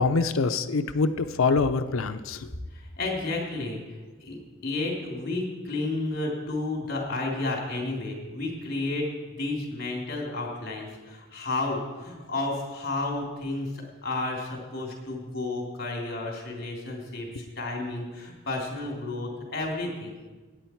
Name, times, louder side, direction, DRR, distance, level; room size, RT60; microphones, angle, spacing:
voice 1, 0.0-2.4, left 4 dB, 90° left, 10 dB, 0.6 m, -24 dB
voice 2, 2.7-3.8 4.2-4.4 4.6-20.2, left 2 dB, 50° left, -1 dB, 3.3 m, -32 dB
17.0 x 9.1 x 4.6 m, 1.3 s
head